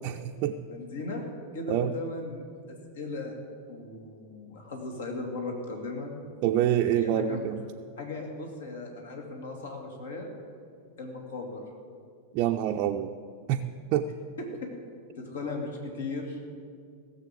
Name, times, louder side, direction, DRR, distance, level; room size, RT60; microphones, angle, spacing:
voice 1, 0.0-0.6 1.7-1.9 6.4-7.6 12.3-13.1 13.5-13.6 13.9-14.1, right 11 dB, 40° right, 4 dB, 0.5 m, -26 dB
voice 2, 0.7-1.2 1.5-3.4 3.7-6.1 6.8-7.4 8.0-10.3 11.0-11.6 14.4-14.7 15.2-16.4, left 2 dB, 65° left, 2 dB, 2.2 m, -37 dB
16.5 x 7.4 x 8.2 m, 2.3 s
figure-of-eight pair, 90°, 0 cm